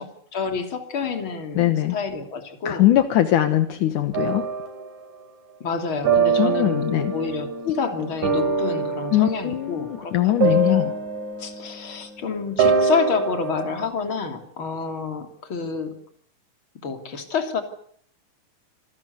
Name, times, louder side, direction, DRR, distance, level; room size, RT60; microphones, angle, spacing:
voice 1, 0.0-2.9 5.6-6.9 7.1-10.9 11.4-15.9 16.8-17.6, left 5 dB, 40° left, 5 dB, 3.7 m, -28 dB
voice 2, 1.5-2.0 2.7-4.5 6.4-7.1 9.1-10.9, left 13 dB, 75° left, 9 dB, 2.7 m, -21 dB
sound 1, 4.1-4.9 6.0-12.1 12.6-13.9, right 5 dB, 65° right, 4.5 m, -24 dB
27.0 x 18.5 x 8.1 m, 0.62 s
omnidirectional pair, 3.6 m